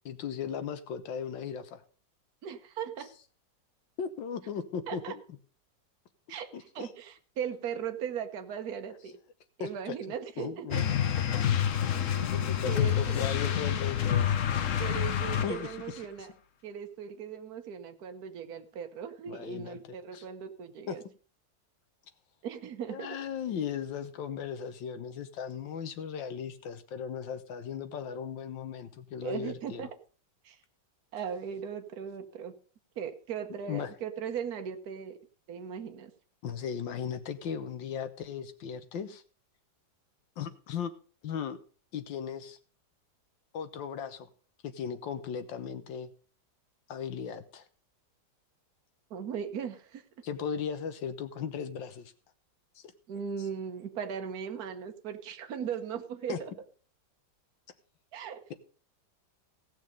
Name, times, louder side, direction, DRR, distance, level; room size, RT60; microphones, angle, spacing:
voice 1, 0.1-1.8 4.0-5.2 6.5-6.9 9.6-9.9 10.4-10.9 12.2-14.3 14.9-16.0 19.3-19.8 20.1-20.2 20.9-21.0 22.9-29.9 33.7-33.9 36.4-39.2 40.4-40.9 41.2-41.6 41.9-42.6 43.5-44.3 44.6-46.1 46.9-47.7 50.2-52.1 52.8-52.9 56.3-56.4, left 7 dB, 85° left, 10 dB, 1.8 m, -37 dB
voice 2, 2.4-3.1 4.9-5.1 6.3-6.5 6.7-9.1 9.6-10.8 12.2-12.3 12.7-13.2 14.8-16.3 16.6-21.0 22.4-23.2 29.2-29.9 30.4-30.6 31.1-32.5 33.0-35.2 35.5-36.1 49.1-50.0 53.1-56.5 58.1-58.5, right 8 dB, 60° right, 6 dB, 1.5 m, -38 dB
sound 1, 10.7-15.9, left 9 dB, 55° left, 1.0 m, -28 dB
16.5 x 6.4 x 5.3 m, 0.40 s
omnidirectional pair, 2.0 m